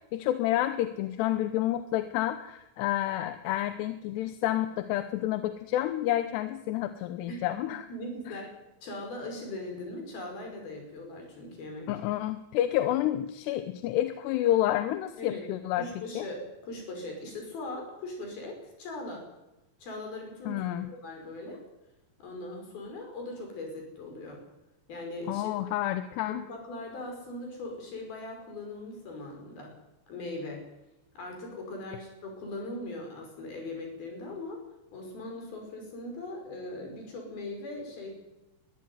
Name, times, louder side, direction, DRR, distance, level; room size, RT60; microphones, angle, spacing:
voice 1, 0.1-7.9 11.9-15.9 16.2-16.3 20.5-20.9 25.3-26.4, left 13 dB, 75° left, 10 dB, 2.9 m, -29 dB
voice 2, 7.9-8.5 8.8-11.9 15.2-15.5 15.8-19.2 19.8-21.6 22.2-24.4 24.9-25.5 26.3-29.7 30.1-30.6 31.2-34.6 34.9-38.1, left 2 dB, 55° left, 2 dB, 7.4 m, -40 dB
21.0 x 14.5 x 9.6 m, 0.95 s
omnidirectional pair, 5.1 m